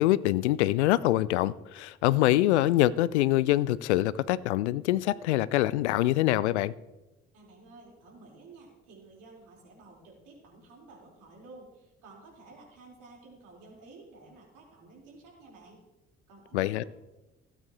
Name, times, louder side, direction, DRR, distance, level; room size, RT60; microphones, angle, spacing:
voice 1, 0.0-6.7 16.5-16.8, left 15 dB, 70° left, 0.5 m, -25 dB
voice 2, 7.3-15.8 16.3-16.9, right 3 dB, 60° right, 4.4 m, -52 dB
17.0 x 9.1 x 3.1 m
figure-of-eight pair, 50°, 36 cm